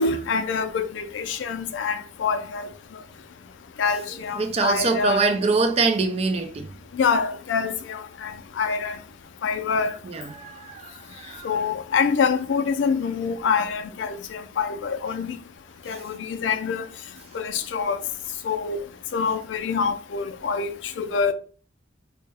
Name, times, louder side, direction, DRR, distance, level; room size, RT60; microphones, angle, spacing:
voice 1, 0.0-2.7 3.8-5.3 7.0-8.3 8.6-9.0 9.4-9.9 11.4-15.4 15.9-16.9 17.3-18.0 18.4-18.8 19.1-21.3, left 5 dB, 75° left, 0.3 m, -25 dB
voice 2, 4.4-6.7 10.1-11.5, right 4 dB, 35° right, 0.3 m, -24 dB
2.2 x 2.1 x 3.3 m
head